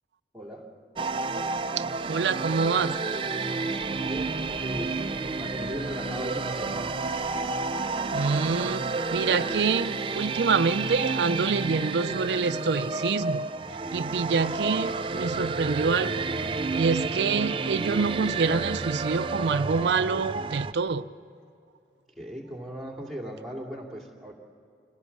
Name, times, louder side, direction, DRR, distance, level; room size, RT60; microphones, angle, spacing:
voice 1, 0.3-0.7 4.0-5.1 5.4-6.9 22.2-24.3, equal, ahead, -1 dB, 2.5 m, -38 dB
sound 1, 1.0-20.7, right 4 dB, 30° right, 0.4 m, -30 dB
voice 2, 1.8-3.0 8.1-8.8 9.1-13.5 13.9-16.2 16.7-21.1, right 5 dB, 80° right, 11 dB, 0.5 m, -26 dB
sound 2, 3.7-14.2, left 1 dB, 80° left, 2.3 m, -47 dB
26.0 x 16.5 x 7.3 m, 2.5 s
head